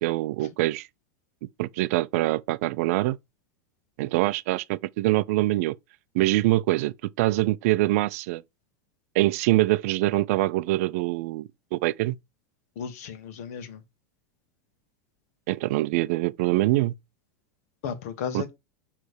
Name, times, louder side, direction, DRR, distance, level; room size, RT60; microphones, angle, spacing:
voice 1, 0.0-0.9 1.6-3.2 4.0-5.8 6.1-8.4 9.1-12.2 15.5-16.9 18.3-18.4, right 18 dB, 65° right, 0.4 m, -24 dB
voice 2, 12.8-13.8 17.8-18.5, left 7 dB, 70° left, 1.3 m, -34 dB
6.3 x 3.2 x 4.9 m
supercardioid pair, 125°, 9 cm